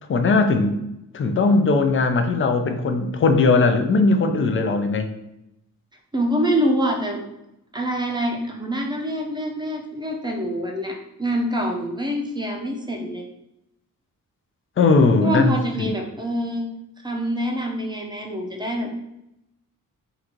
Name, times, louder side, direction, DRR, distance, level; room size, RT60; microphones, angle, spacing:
voice 1, 0.1-0.8 1.1-5.1 14.8-15.9, left 3 dB, 40° left, 6 dB, 0.5 m, -19 dB
voice 2, 6.1-7.2 7.7-13.2 15.2-16.7 17.0-18.9, equal, 15° right, 1 dB, 0.6 m, -25 dB
3.9 x 2.6 x 4.4 m, 0.84 s
wide cardioid pair, 160°, 33 cm